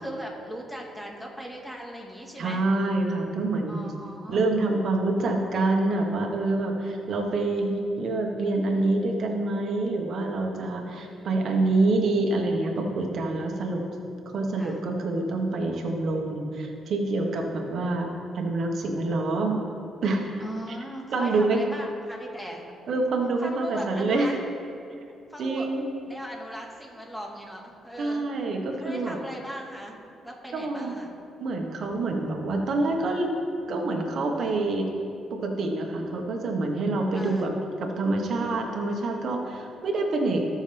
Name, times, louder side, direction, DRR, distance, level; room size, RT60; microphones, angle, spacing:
voice 1, 0.0-2.6 3.7-4.4 8.7-9.5 11.0-11.8 14.2-14.8 16.4-16.6 20.4-22.6 23.4-24.3 25.3-25.7 26.0-28.2 28.8-30.0 30.2-31.1 37.1-37.6, equal, 5° left, -1 dB, 2.1 m, -39 dB
voice 2, 2.4-3.9 4.3-13.8 14.3-18.1 18.3-19.6 20.0-20.3 21.1-21.6 22.9-24.4 25.4-25.8 28.0-29.2 30.5-30.9 31.4-33.3 33.7-34.8 35.3-37.5 37.8-40.4, right 2 dB, 60° right, 2 dB, 1.5 m, -26 dB
18.5 x 6.4 x 3.5 m, 2.6 s
cardioid pair, 90°, 0 cm